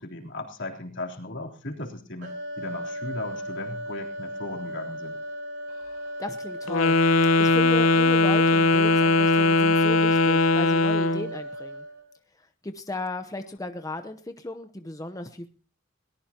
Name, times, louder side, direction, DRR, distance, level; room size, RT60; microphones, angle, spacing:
voice 1, 0.0-5.2, left 2 dB, 65° left, 1 dB, 3.6 m, -37 dB
sound 1, 2.2-12.1, right 1 dB, 65° right, 4.0 m, -35 dB
voice 2, 6.2-7.0 7.4-11.8 12.3-15.5, left 2 dB, 15° left, 8 dB, 0.8 m, -36 dB
Wind instrument woodwind instrument, 6.7-11.3, left 3 dB, 80° left, 0.8 m, -20 dB
22.0 x 19.0 x 2.9 m, 0.38 s
head